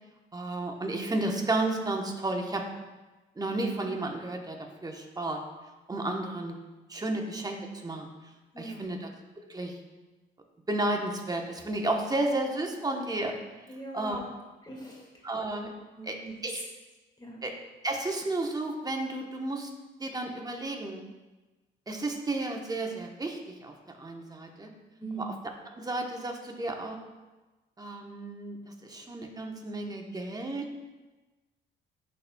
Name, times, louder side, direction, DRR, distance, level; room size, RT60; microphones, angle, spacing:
voice 1, 0.3-2.6 3.4-4.6 4.8-5.4 5.9-6.5 6.9-7.6 7.8-8.1 8.6-9.1 9.5-9.7 10.7-13.3 13.9-14.2 15.2-15.7 16.0-16.6 17.4-17.5 17.8-19.7 20.0-21.0 21.9-24.7 25.2-25.3 25.7-27.0 27.8-30.7, right 2 dB, 20° right, 2 dB, 1.0 m, -32 dB
voice 2, 8.5-9.0 13.7-14.2 14.6-15.2 15.9-16.6 17.2-17.4 25.0-25.3, right 2 dB, 20° left, -2 dB, 1.9 m, -41 dB
11.5 x 4.1 x 2.3 m, 1.2 s
cardioid pair, 90°, 20 cm